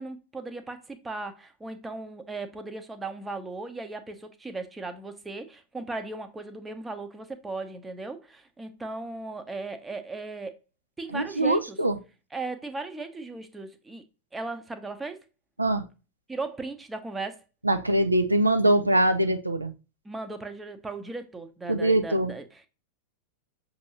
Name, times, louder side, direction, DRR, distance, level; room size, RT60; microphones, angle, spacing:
voice 1, 0.0-10.6 11.0-11.8 12.3-14.0 14.3-15.2 16.3-17.4 20.0-22.7, right 3 dB, 10° right, 0.7 m, -37 dB
voice 2, 11.1-12.0 15.6-15.8 17.6-19.7 21.7-22.3, right 1 dB, 85° right, 0.5 m, -23 dB
6.2 x 2.7 x 2.9 m
figure-of-eight pair, 90°, 0 cm